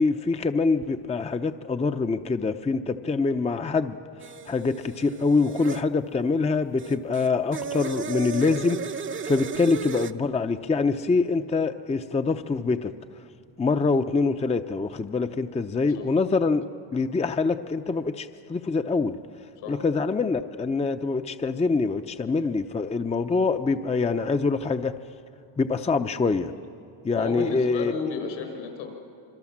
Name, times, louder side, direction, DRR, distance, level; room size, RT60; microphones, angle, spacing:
voice 1, 0.0-4.0 4.5-8.8 9.3-12.9 13.6-16.7 16.9-19.2 19.7-25.0 25.6-26.5 27.0-27.9, left 4 dB, 15° left, 8 dB, 0.6 m, -25 dB
sound 1, 4.2-5.8 6.8-10.1, right 6 dB, 25° right, 0.8 m, -35 dB
voice 2, 27.2-28.9, left 5 dB, 75° left, 4 dB, 5.2 m, -32 dB
26.5 x 23.5 x 7.3 m, 2.5 s
cardioid pair, 115°, 45 cm